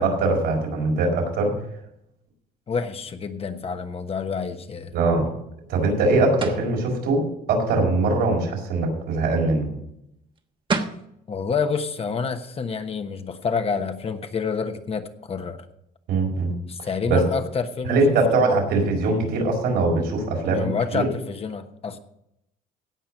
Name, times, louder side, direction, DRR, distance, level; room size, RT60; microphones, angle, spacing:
voice 1, 0.0-1.5 4.9-5.3 5.7-7.2 7.5-9.7 16.1-16.5 16.8-17.2 17.9-21.0, right 3 dB, 85° right, 0 dB, 4.8 m, -22 dB
voice 2, 2.7-4.9 11.3-15.7 16.7-18.5 20.5-22.0, left 5 dB, 35° left, 8 dB, 1.1 m, -28 dB
sound 1, 6.4-6.7 10.4-10.5 10.7-11.1, right 4 dB, 30° right, 1.3 m, -26 dB
17.0 x 5.8 x 6.5 m, 0.78 s
cardioid pair, 110°, 17 cm